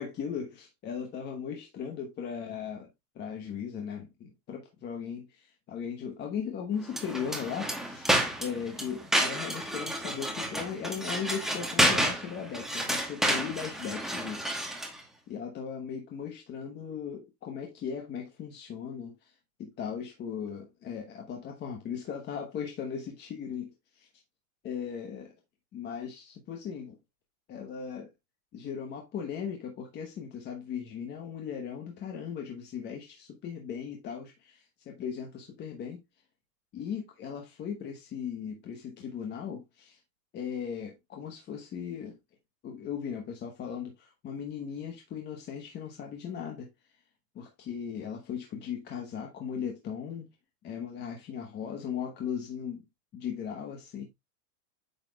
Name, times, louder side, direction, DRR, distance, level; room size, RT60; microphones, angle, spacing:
voice 1, 0.0-2.9 3.1-8.1 8.4-14.5 14.9-24.1 24.6-25.3 25.7-27.0 27.5-28.1 28.5-36.0 36.7-40.0 40.3-42.2 42.6-46.7 47.3-50.3 50.6-52.8 53.1-54.1, left 7 dB, 20° left, 1.1 m, -38 dB
sound 1, 6.9-15.0, right 1 dB, ahead, 1.1 m, -30 dB
9.0 x 5.9 x 2.2 m
supercardioid pair, 155°, 47 cm